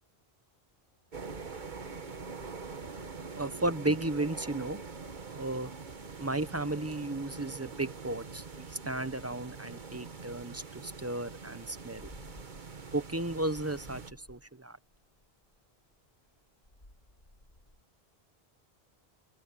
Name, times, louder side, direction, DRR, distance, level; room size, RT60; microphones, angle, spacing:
sound 1, 0.8-17.8, left 1 dB, 55° left, 7.5 m, -62 dB
sound 2, 1.1-14.1, right 4 dB, 50° right, 1.4 m, -44 dB
voice 1, 3.4-4.8 5.3-5.7 6.2-12.1 12.9-14.8, right 2 dB, 15° right, 0.6 m, -34 dB
omnidirectional pair, 1.1 m